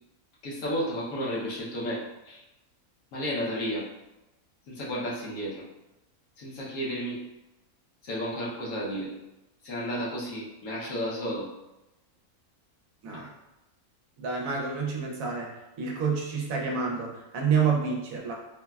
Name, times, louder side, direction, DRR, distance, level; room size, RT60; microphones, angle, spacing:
voice 1, 0.4-2.4 3.1-3.9 4.7-5.6 6.4-7.2 8.0-9.1 9.6-11.5, equal, 75° left, -5 dB, 1.2 m, -32 dB
voice 2, 14.2-15.5 15.8-18.3, right 5 dB, 75° right, 0 dB, 1.0 m, -28 dB
3.7 x 2.1 x 2.2 m, 0.96 s
omnidirectional pair, 1.5 m